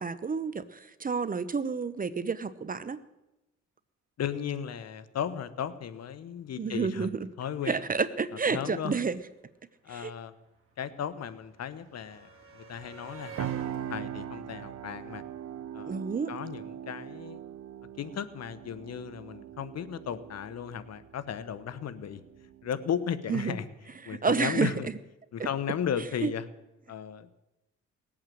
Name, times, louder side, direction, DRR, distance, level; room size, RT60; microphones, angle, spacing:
voice 1, 0.0-3.0 6.6-7.3 7.7-9.2 9.9-10.1 15.9-16.3 23.3-23.6 24.0-24.7 26.2-26.3, right 5 dB, 30° right, 15 dB, 0.9 m, -30 dB
voice 2, 4.2-7.1 7.4-7.8 8.5-9.0 9.8-10.3 10.8-12.3 12.5-13.5 13.9-15.2 15.7-16.0 16.3-17.4 18.0-22.2 22.6-23.6 24.0-24.9 25.3-26.4 26.9-27.3, left 8 dB, 55° left, 14 dB, 1.2 m, -35 dB
sound 1, 9.2-9.3 9.5-15.7 16.9-17.0 17.3-17.4, right 5 dB, 45° right, 4.0 m, -50 dB
sound 2, 13.4-23.1, right 10 dB, 60° right, 0.7 m, -41 dB
19.0 x 8.7 x 7.7 m, 0.96 s
cardioid pair, 90°, 30 cm